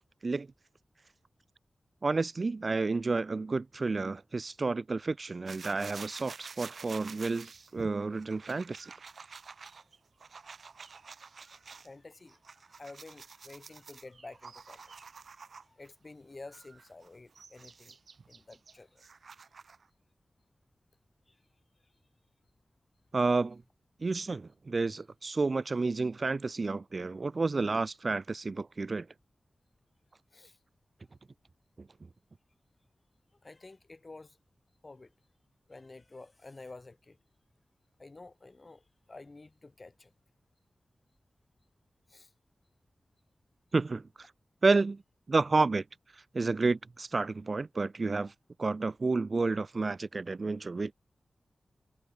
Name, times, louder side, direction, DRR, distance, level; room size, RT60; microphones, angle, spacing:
voice 1, 2.0-8.9 23.1-23.6 24.0-29.1 43.7-44.3 44.6-45.0 45.3-45.8 46.3-48.3 48.6-50.9, right 3 dB, 50° right, 0.3 m, -30 dB
sound 1, 5.5-11.9 12.3-15.9 16.5-19.9, right 5 dB, 75° right, 0.9 m, -49 dB
voice 2, 11.6-14.9 15.6-18.0 18.3-19.0 21.3-21.4 30.3-30.6 33.4-34.4 34.8-35.1 35.7-37.2 38.0-40.1 42.1-42.3 48.1-48.2, left 3 dB, 40° left, 3.8 m, -50 dB
wide cardioid pair, 65°, 0 cm